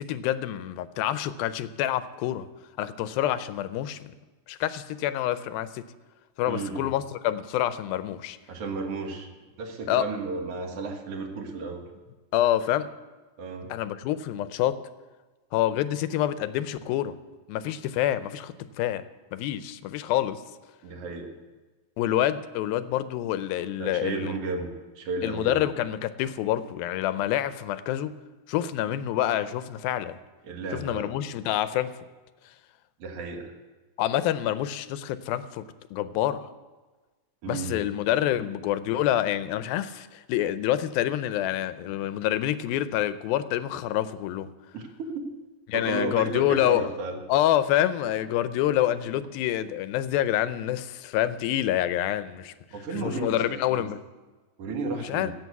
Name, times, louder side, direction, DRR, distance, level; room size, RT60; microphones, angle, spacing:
voice 1, 0.0-2.5 2.8-4.1 4.5-5.8 6.4-8.4 9.9-10.1 12.3-12.9 13.7-14.8 15.5-17.2 17.5-19.0 19.3-20.4 22.0-24.3 25.2-28.2 28.5-30.2 30.7-31.9 34.0-36.5 37.5-44.5 45.7-46.9 47.3-52.5 53.0-54.0 55.0-55.3, left 12 dB, 90° left, 13 dB, 2.5 m, -27 dB
voice 2, 6.5-6.8 8.5-11.8 13.4-13.7 20.8-21.3 23.8-25.7 30.4-31.1 33.0-33.5 37.4-37.8 44.7-45.3 45.7-47.2 52.7-53.8 54.6-55.3, right 3 dB, 55° right, 4 dB, 2.0 m, -33 dB
15.5 x 7.8 x 8.1 m, 1.3 s
omnidirectional pair, 4.1 m